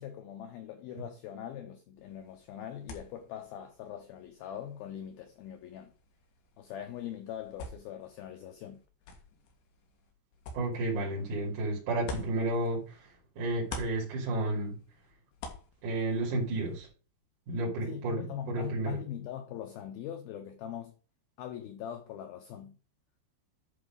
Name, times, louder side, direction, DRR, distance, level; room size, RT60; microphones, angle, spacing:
voice 1, 0.0-5.9 6.6-8.8 17.8-20.9 21.4-22.8, left 9 dB, 90° left, 2.1 m, -42 dB
sound 1, 2.0-13.2 13.5-16.9, left 3 dB, 70° left, 3.8 m, -49 dB
voice 2, 10.5-13.0 13.4-14.8 15.8-16.9 17.5-19.0, right 2 dB, 45° right, 3.9 m, -32 dB
11.0 x 3.9 x 5.2 m
omnidirectional pair, 5.4 m